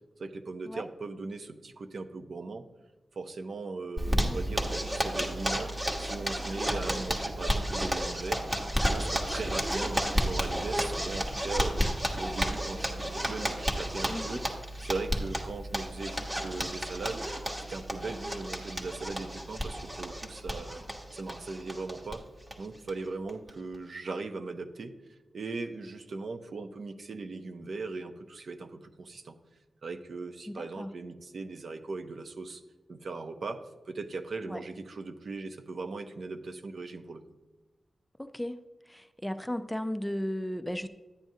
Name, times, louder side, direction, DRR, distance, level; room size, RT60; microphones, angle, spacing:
voice 1, 0.2-2.6 3.2-5.7 6.0-8.4 8.9-11.9 12.2-14.4 14.8-17.3 17.7-20.8 21.1-22.2 22.6-24.9 25.3-29.4 29.8-32.6 32.9-37.2, right 3 dB, 75° right, 7 dB, 0.7 m, -39 dB
Zipper (clothing), 4.0-22.2 22.5-22.6 22.9-23.0 23.3-23.7, equal, 20° right, 1.1 m, -32 dB
voice 2, 4.1-4.4 14.1-14.4 30.5-30.9 34.5-34.6 38.2-38.6 38.9-40.9, left 1 dB, 5° left, 10 dB, 0.4 m, -35 dB
11.5 x 9.1 x 2.7 m, 1.2 s
wide cardioid pair, 135°, 0 cm